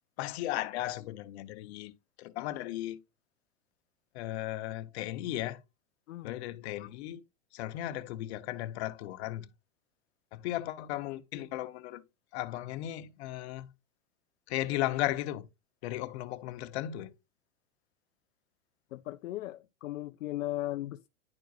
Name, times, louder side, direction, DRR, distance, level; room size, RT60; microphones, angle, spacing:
voice 1, 0.2-3.0 4.1-5.6 6.2-7.2 7.5-9.5 10.3-12.0 12.3-13.7 14.5-15.5 15.8-17.1, left 14 dB, 55° left, 0.8 m, -36 dB
voice 2, 18.9-21.1, left 15 dB, 75° left, 0.5 m, -37 dB
10.5 x 4.5 x 2.4 m
hypercardioid pair, 110°, 39 cm